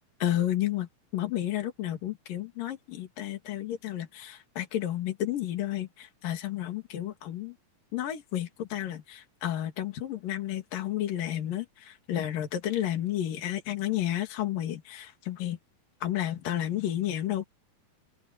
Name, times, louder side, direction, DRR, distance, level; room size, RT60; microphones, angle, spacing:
voice 1, 0.2-7.5 7.9-15.6 16.0-17.4, left 12 dB, 65° left, 4.0 m, -31 dB
open air
omnidirectional pair, 4.2 m